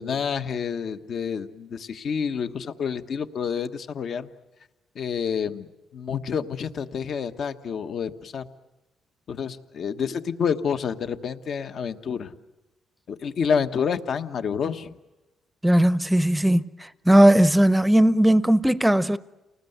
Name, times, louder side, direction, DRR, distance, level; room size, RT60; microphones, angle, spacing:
voice 1, 0.0-4.3 4.9-5.7 5.9-8.5 9.3-12.3 13.1-14.9, left 6 dB, 60° left, 1.3 m, -28 dB
voice 2, 15.6-19.2, right 1 dB, 5° right, 0.8 m, -18 dB
29.5 x 19.5 x 8.1 m
cardioid pair, 90°, 0 cm